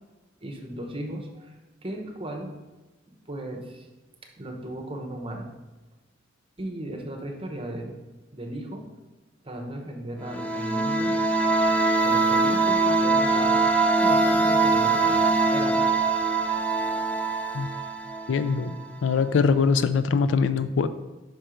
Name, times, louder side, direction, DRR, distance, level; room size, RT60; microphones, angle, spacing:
voice 1, 0.4-1.6 1.8-2.5 3.3-3.9 4.4-5.5 6.6-8.0 8.3-8.9 9.4-11.2 12.0-13.6 14.0-15.8, right 1 dB, 30° right, 2 dB, 0.9 m, -36 dB
sound 1, 10.2-18.8, right 3 dB, 5° left, 0.4 m, -23 dB
voice 2, 18.3-20.9, left 5 dB, 75° left, 12 dB, 0.4 m, -23 dB
5.7 x 4.4 x 5.0 m, 1.2 s
head